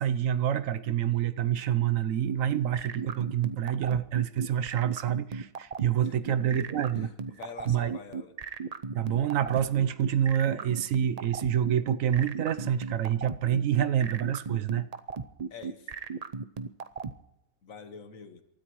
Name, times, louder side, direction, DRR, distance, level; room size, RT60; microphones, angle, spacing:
voice 1, 0.0-7.1 7.7-7.9 8.9-14.9, right 10 dB, 65° right, 1.0 m, -27 dB
sound 1, 2.3-17.1, right 5 dB, 50° right, 0.4 m, -35 dB
voice 2, 6.0-6.7 7.0-8.3 15.5-15.9 17.6-18.4, left 5 dB, 65° left, 1.6 m, -46 dB
28.0 x 13.5 x 3.1 m
omnidirectional pair, 1.6 m